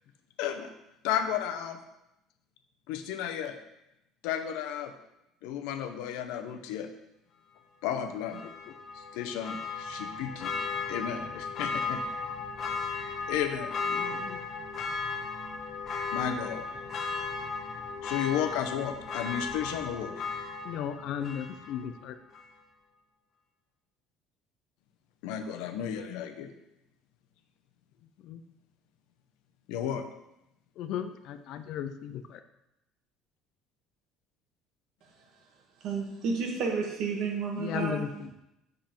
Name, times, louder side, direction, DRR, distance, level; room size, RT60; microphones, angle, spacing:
voice 1, 0.4-0.7 1.0-1.8 2.9-3.5 4.2-4.9 5.4-6.9 7.8-8.4 8.9-10.5 10.9-12.0 13.3-14.0 16.1-16.6 18.0-20.1 25.2-26.5 29.7-30.0, left 9 dB, 85° left, 7 dB, 0.8 m, -33 dB
Church bell, 8.3-22.0 22.3-22.4, left 4 dB, 35° left, 0.9 m, -35 dB
voice 2, 13.9-14.4 20.6-22.2 28.2-28.4 30.8-32.4 37.6-38.3, left 9 dB, 55° left, 10 dB, 0.5 m, -36 dB
voice 3, 35.8-38.0, right 5 dB, 60° right, 2 dB, 1.5 m, -31 dB
7.1 x 5.3 x 4.4 m, 0.87 s
cardioid pair, 155°, 0 cm